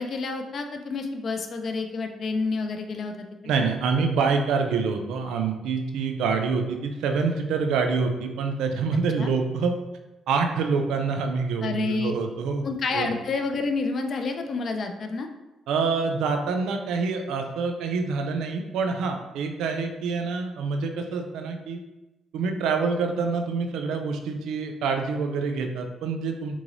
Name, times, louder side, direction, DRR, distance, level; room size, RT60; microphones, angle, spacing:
voice 1, 0.0-3.3 9.2-9.3 11.6-12.1 12.6-15.3, left 3 dB, 55° left, 5 dB, 0.4 m, -29 dB
voice 2, 3.5-9.7 10.3-12.7 12.9-13.1 15.7-21.8 22.3-26.6, right 5 dB, 90° right, 5 dB, 0.4 m, -26 dB
3.8 x 3.0 x 2.5 m, 1.0 s
cardioid pair, 90°, 0 cm